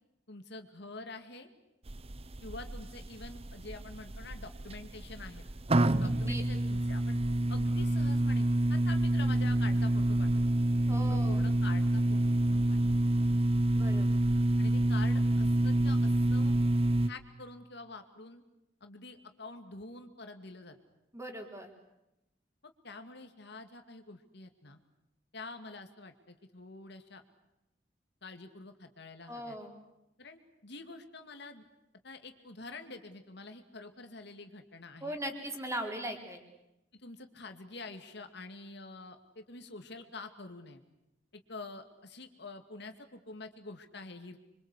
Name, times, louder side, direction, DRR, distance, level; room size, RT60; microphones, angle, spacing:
voice 1, 0.3-1.5 2.4-5.4 5.9-7.2 7.5-10.4 11.1-12.9 14.6-16.5 17.1-18.4 18.8-20.8 22.8-24.8 25.3-27.2 28.2-29.6 30.2-31.6 32.0-35.2 36.9-40.8 41.5-44.4, left 3 dB, 65° left, 7 dB, 2.4 m, -47 dB
sound 1, 1.9-17.1, right 1 dB, 35° right, 0.9 m, -28 dB
voice 2, 6.0-6.4 10.9-11.4 13.7-14.1 21.1-21.7 29.3-29.7 35.0-36.4, right 1 dB, 15° right, 3 dB, 4.2 m, -39 dB
26.5 x 24.5 x 8.4 m, 0.88 s
head